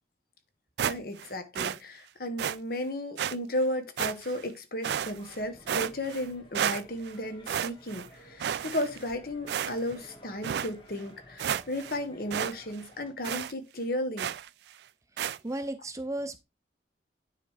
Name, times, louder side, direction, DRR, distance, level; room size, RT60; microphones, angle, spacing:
voice 1, 0.8-14.3, left 1 dB, 55° left, 1.3 m, -34 dB
sound 1, 0.8-1.3 1.5-1.8 2.4-2.6 3.2-3.3 4.0-4.4 4.8-5.4 5.7-6.3 6.5-7.1 7.5-8.1 8.4-9.1 9.5-10.0 10.4-10.7 11.1-11.2 11.4-12.0 12.3-12.5 12.8-12.9 13.2-13.5 14.2-14.5 15.2-15.4, right 9 dB, 70° right, 0.3 m, -32 dB
sound 2, 4.8-13.1, left 1 dB, 30° left, 1.8 m, -54 dB
voice 2, 15.4-16.4, right 1 dB, 20° right, 0.6 m, -34 dB
9.3 x 3.4 x 4.9 m
head